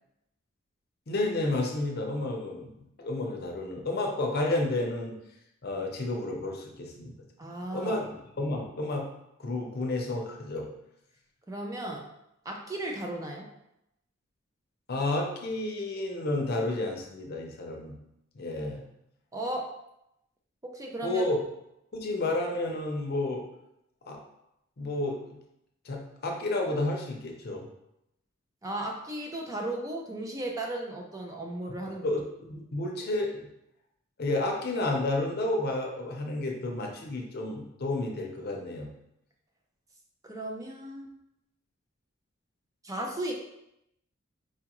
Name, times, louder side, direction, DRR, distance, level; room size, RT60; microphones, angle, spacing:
voice 1, 1.1-5.2 5.6-7.1 7.7-8.0 8.4-9.1 9.4-10.7 14.9-18.0 18.3-18.8 21.0-21.4 21.9-23.4 24.1-24.2 24.8-25.4 25.9-27.7 31.7-33.5 34.2-38.9, left 2 dB, 50° left, 0 dB, 0.6 m, -31 dB
voice 2, 7.4-7.9 11.5-12.1 12.5-13.5 19.3-19.7 20.6-21.2 28.6-32.0 40.2-41.1 42.8-43.3, right 1 dB, 15° right, 0 dB, 0.4 m, -35 dB
4.5 x 2.3 x 2.9 m, 0.83 s
head